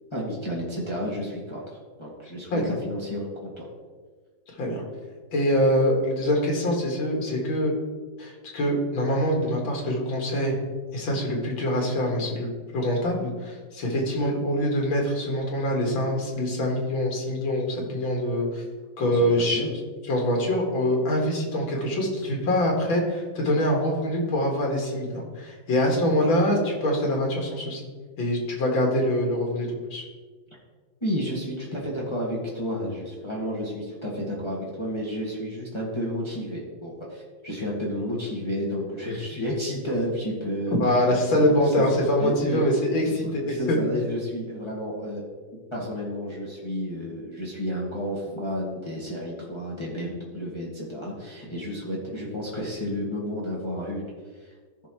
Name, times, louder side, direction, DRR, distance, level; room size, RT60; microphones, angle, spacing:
voice 1, 0.1-1.6 2.0-3.7 19.0-19.7 31.0-41.0 41.4-41.8 42.2-42.6 43.0-45.2 45.7-54.1 54.4-54.5, equal, 15° left, -5 dB, 1.6 m, -31 dB
voice 2, 4.5-4.8 5.3-7.7 8.2-10.5 10.9-18.6 19.0-19.7 20.1-27.8 28.2-30.0 40.8-43.8, left 1 dB, 80° left, 0 dB, 2.6 m, -24 dB
14.5 x 6.0 x 3.1 m, 1.5 s
omnidirectional pair, 2.1 m